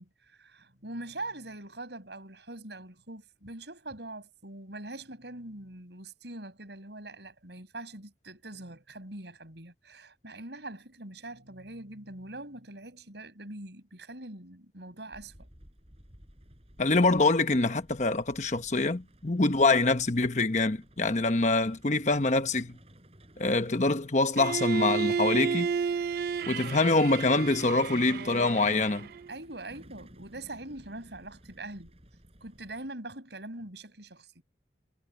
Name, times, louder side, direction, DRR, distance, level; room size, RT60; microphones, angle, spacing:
voice 1, 0.0-15.5 25.7-26.0 29.3-31.9 32.4-34.4, right 2 dB, 75° right, 5.4 m, -43 dB
Truck, 15.1-32.9, right 1 dB, 35° right, 7.2 m, -56 dB
voice 2, 16.8-22.8 23.4-25.7 26.5-29.1, left 3 dB, 40° left, 1.0 m, -25 dB
Bowed string instrument, 24.4-29.3, right 6 dB, 55° right, 0.3 m, -32 dB
head